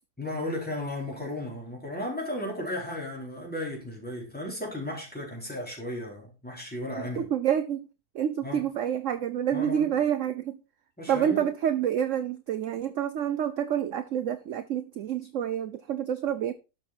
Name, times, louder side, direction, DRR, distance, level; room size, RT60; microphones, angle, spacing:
voice 1, 0.2-7.3 8.4-8.6 9.5-9.9 11.0-11.5, left 1 dB, 5° left, 4.4 m, -35 dB
voice 2, 7.2-7.9 8.1-10.6 11.1-16.5, right 9 dB, 60° right, 1.0 m, -28 dB
12.5 x 6.5 x 4.5 m
omnidirectional pair, 1.7 m